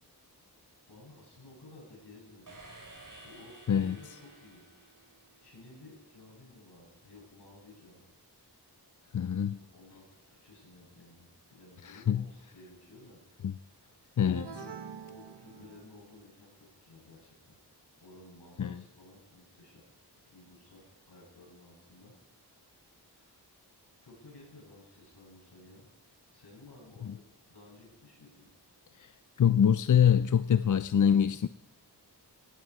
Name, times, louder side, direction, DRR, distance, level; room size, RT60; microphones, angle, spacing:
voice 1, 0.9-2.6 3.1-4.6 5.4-8.1 9.4-13.2 14.0-14.1 14.4-14.7 15.1-17.6 18.0-19.8 20.2-22.1 22.9-23.4 24.0-25.9 26.3-27.2 27.5-28.5, left 2 dB, 75° left, 7.8 m, -55 dB
sound 1, 2.5-5.6, right 2 dB, 50° right, 5.2 m, -53 dB
voice 2, 9.1-9.6 11.8-12.2 13.4-13.5 14.2-14.5 18.6-18.8 27.0-27.1 29.0-29.1 29.4-31.5, left 8 dB, 50° left, 0.5 m, -25 dB
sound 2, 14.3-16.2, right 6 dB, 80° right, 1.6 m, -46 dB
18.0 x 16.0 x 4.9 m
wide cardioid pair, 70°, 40 cm